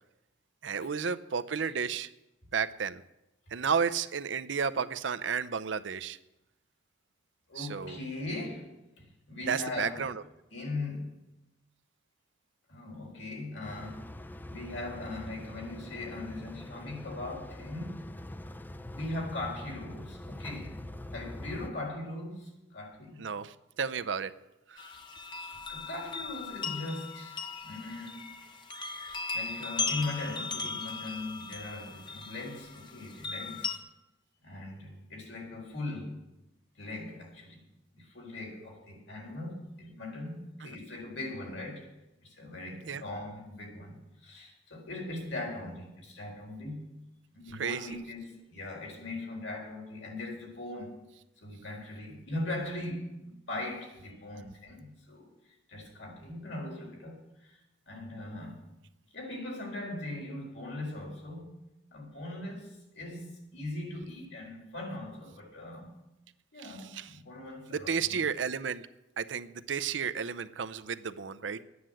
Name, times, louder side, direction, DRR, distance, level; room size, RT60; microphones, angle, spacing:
voice 1, 0.6-2.1 2.5-3.0 3.5-6.2 7.6-8.0 9.5-10.2 23.2-24.3 24.7-24.8 40.6-40.8 42.9-43.0 47.5-47.9 66.6-67.2 67.7-68.8 69.2-71.6, right 6 dB, 75° right, 12 dB, 0.6 m, -32 dB
voice 2, 7.5-8.7 9.3-10.1 10.5-11.1 12.7-14.1 14.5-18.1 18.9-20.7 21.1-23.2 25.7-28.3 29.0-33.8 34.4-36.2 36.8-37.6 37.9-41.9 42.2-46.8 47.3-51.0 51.4-58.6 59.1-61.6 61.9-65.9 66.5-68.2, left 2 dB, 85° left, -1 dB, 4.2 m, -40 dB
sound 1, 13.6-21.7, left 1 dB, 10° left, 0.4 m, -44 dB
sound 2, 24.8-33.8, left 4 dB, 25° left, 1.0 m, -38 dB
11.5 x 9.5 x 7.6 m, 0.93 s
head